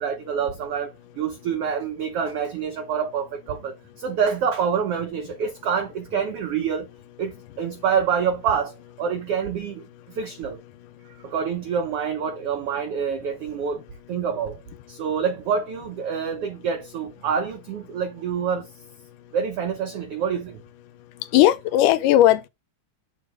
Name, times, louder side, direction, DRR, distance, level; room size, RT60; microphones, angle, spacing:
voice 1, 0.0-6.9 7.2-7.3 7.6-9.8 10.2-10.6 11.2-13.8 14.1-14.6 14.9-18.7 19.3-20.6, right 7 dB, 75° right, 1.3 m, -26 dB
voice 2, 21.3-22.5, left 13 dB, 90° left, 2.2 m, -17 dB
7.3 x 3.6 x 4.8 m
omnidirectional pair, 3.7 m